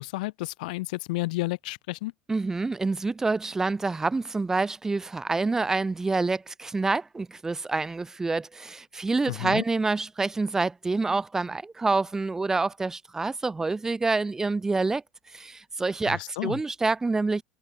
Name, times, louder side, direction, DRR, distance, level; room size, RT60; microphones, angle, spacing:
voice 1, 0.0-2.1 9.3-9.6 16.0-16.6, left 21 dB, 90° left, 4.0 m, -31 dB
voice 2, 2.3-15.0 15.3-17.4, right 3 dB, 10° right, 2.0 m, -27 dB
cardioid pair, 145°, 4 cm